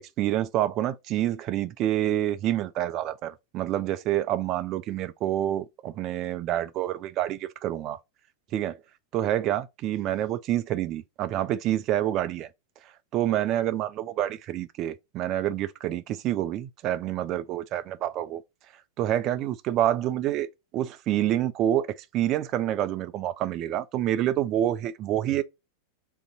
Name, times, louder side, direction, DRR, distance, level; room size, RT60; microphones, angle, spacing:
voice 1, 0.0-8.0 8.5-8.8 9.1-12.5 12.8-18.4 19.0-20.5 20.7-25.4, right 12 dB, 35° right, 0.3 m, -27 dB
3.4 x 2.6 x 4.1 m
figure-of-eight pair, 90°, 0 cm